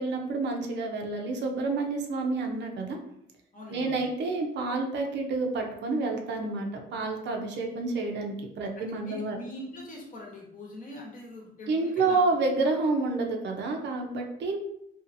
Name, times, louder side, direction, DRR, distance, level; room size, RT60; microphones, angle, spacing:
voice 1, 0.0-3.0 3.7-9.4 11.7-14.6, right 3 dB, 65° right, 3 dB, 0.6 m, -29 dB
voice 2, 3.5-4.0 8.7-12.2, left 1 dB, 45° left, -2 dB, 0.9 m, -43 dB
2.6 x 2.4 x 2.5 m, 0.75 s
cardioid pair, 90°, 20 cm